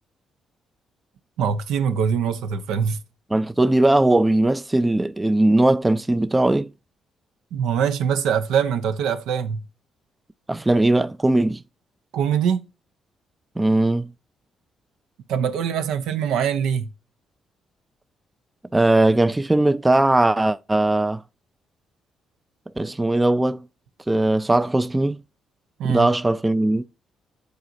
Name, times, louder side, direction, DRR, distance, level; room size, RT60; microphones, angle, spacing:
voice 1, 1.4-3.0 7.5-9.6 12.1-12.6 15.3-16.9 25.8-26.1, right 7 dB, 85° right, 0.7 m, -23 dB
voice 2, 3.3-6.7 10.5-11.6 13.6-14.1 18.7-21.2 22.8-23.6 24.1-25.2 25.8-26.8, right 2 dB, 15° right, 0.4 m, -19 dB
10.5 x 4.0 x 2.6 m
cardioid pair, 90°, 0 cm